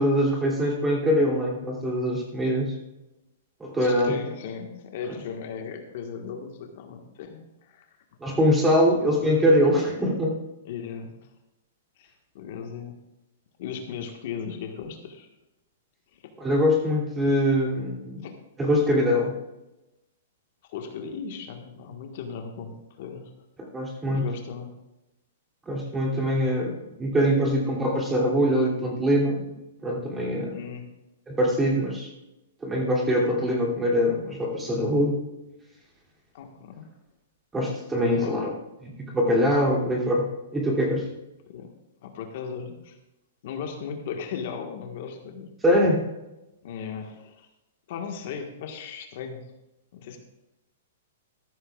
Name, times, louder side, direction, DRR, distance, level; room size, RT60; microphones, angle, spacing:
voice 1, 0.0-2.8 3.6-4.2 8.2-10.4 16.4-18.3 18.6-19.3 23.7-24.3 25.7-29.5 29.8-30.6 31.3-32.1 32.6-35.2 37.5-38.5 39.0-41.1 45.6-46.0, equal, 10° right, -2 dB, 2.9 m, -23 dB
voice 2, 3.8-7.8 8.9-9.4 10.6-11.1 12.0-13.0 13.6-15.3 16.1-16.3 18.2-18.3 20.7-23.3 24.1-24.7 30.5-30.9 36.3-36.9 38.2-38.5 41.5-41.7 42.0-43.0 43.4-45.5 46.6-47.5 47.9-49.4 49.9-50.2, left 6 dB, 55° left, 3 dB, 1.5 m, -37 dB
14.0 x 14.0 x 2.4 m, 0.97 s
hypercardioid pair, 150°, 0 cm